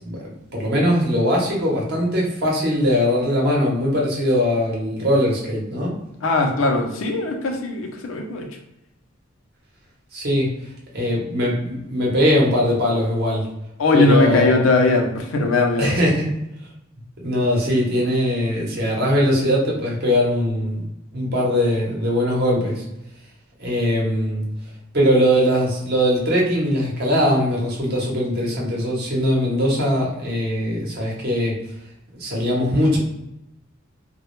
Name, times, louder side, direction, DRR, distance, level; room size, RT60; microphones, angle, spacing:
voice 1, 0.0-5.9 10.1-10.5 10.9-13.5 13.9-14.6 15.8-16.3 17.2-20.8 21.1-22.8 23.6-24.5 24.9-31.6 32.1-33.0, equal, 55° right, -3 dB, 0.8 m, -21 dB
voice 2, 6.2-8.5 13.8-15.9, left 2 dB, 80° left, 3 dB, 0.5 m, -19 dB
2.2 x 2.0 x 3.0 m, 0.87 s
head